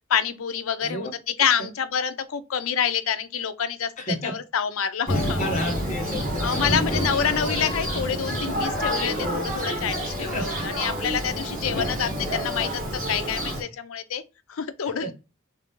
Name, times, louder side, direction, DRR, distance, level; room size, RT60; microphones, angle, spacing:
voice 1, 0.1-1.1 1.4-3.9 4.2-5.4 6.4-14.2 14.5-15.1, left 7 dB, 85° left, 0.5 m, -27 dB
voice 2, 4.0-4.4 5.1-7.9 10.2-10.6 11.7-11.8 12.3-12.4 15.0-15.1, left 1 dB, 35° left, 1.2 m, -33 dB
Thunder, 5.1-13.6, equal, 45° right, 1.5 m, -28 dB
3.3 x 2.6 x 3.6 m
head